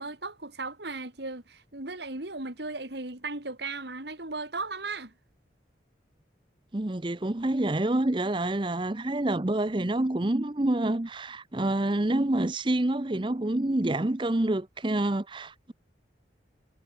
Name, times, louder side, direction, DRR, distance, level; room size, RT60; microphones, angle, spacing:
voice 1, 0.0-5.1, right 3 dB, 65° right, 3.0 m, -36 dB
voice 2, 6.7-15.7, right 1 dB, 25° right, 0.7 m, -27 dB
head